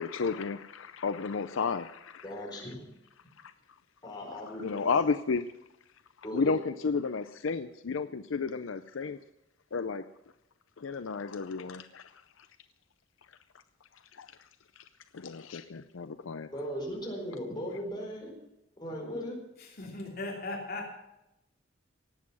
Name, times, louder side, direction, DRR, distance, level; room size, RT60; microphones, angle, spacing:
voice 1, 0.0-2.3 3.4-3.5 4.5-5.5 6.3-9.2 9.7-10.1 10.8-12.1 12.4-12.5 14.1-14.3 14.8-14.9 15.1-16.5, left 5 dB, 75° left, 11 dB, 0.6 m, -32 dB
voice 2, 2.2-2.8 4.0-5.0 6.2-6.6 16.5-18.3 18.8-19.3, equal, 20° left, -1 dB, 4.5 m, -38 dB
voice 3, 19.6-21.0, left 2 dB, 50° left, 0 dB, 3.1 m, -38 dB
18.5 x 8.5 x 6.1 m, 0.87 s
head